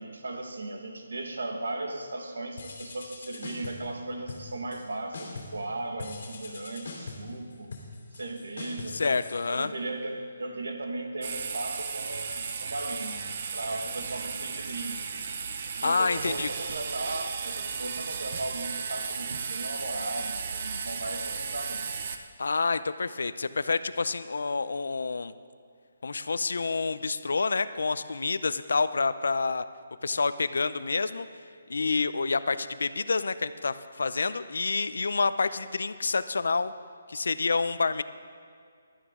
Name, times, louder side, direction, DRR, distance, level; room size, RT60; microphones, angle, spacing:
voice 1, 0.0-7.7 8.1-9.0 9.5-13.2 13.5-15.2 15.8-21.9, right 2 dB, 80° right, 4 dB, 1.7 m, -37 dB
sound 1, 2.6-3.9 4.3-4.8 5.1-5.6 6.0-10.0, left 3 dB, 55° left, 2.8 m, -43 dB
voice 2, 8.9-9.7 15.8-16.5 22.4-25.3 26.0-29.6 30.0-31.3 31.7-36.7 37.1-38.0, left 4 dB, 75° left, 13 dB, 0.6 m, -28 dB
sound 2, 11.2-22.2, right 6 dB, 40° right, 0.7 m, -35 dB
16.0 x 12.0 x 3.7 m, 2.2 s
hypercardioid pair, 170°, 0 cm